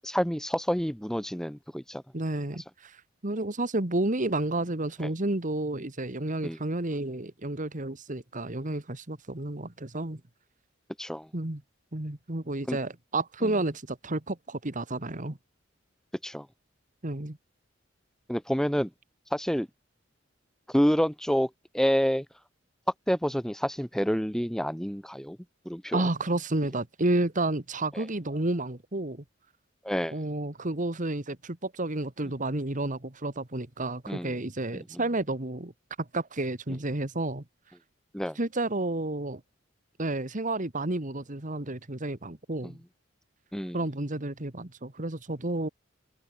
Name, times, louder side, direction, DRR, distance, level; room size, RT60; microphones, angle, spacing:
voice 1, 0.0-2.0 6.4-6.6 11.0-11.3 12.7-12.8 13.4-13.5 16.2-16.5 18.3-18.9 19.3-19.7 20.7-22.3 23.1-25.4 25.7-26.1 27.9-28.0 29.8-30.1 34.1-34.4 34.7-34.8 38.1-38.4 42.6-42.7 43.5-43.8, equal, 5° left, 1.9 m, -28 dB
voice 2, 2.1-10.2 11.3-11.6 11.9-15.4 17.0-17.4 25.9-29.2 30.1-35.7 36.0-37.4 38.4-39.4 40.0-42.8 43.7-45.7, right 2 dB, 40° right, 1.9 m, -31 dB
head